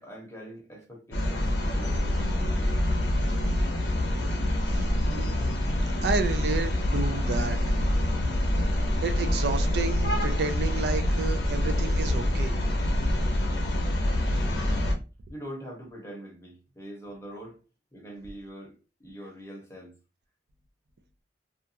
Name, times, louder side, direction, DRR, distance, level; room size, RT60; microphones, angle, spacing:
voice 1, 0.0-2.9 15.3-17.6 17.9-19.9, right 1 dB, 15° left, 0.8 m, -43 dB
sound 1, 1.1-15.0, left 1 dB, 75° left, 0.6 m, -26 dB
voice 2, 4.6-5.6 6.0-7.6 9.0-12.6, right 4 dB, 65° right, 0.4 m, -31 dB
2.5 x 2.2 x 2.6 m
head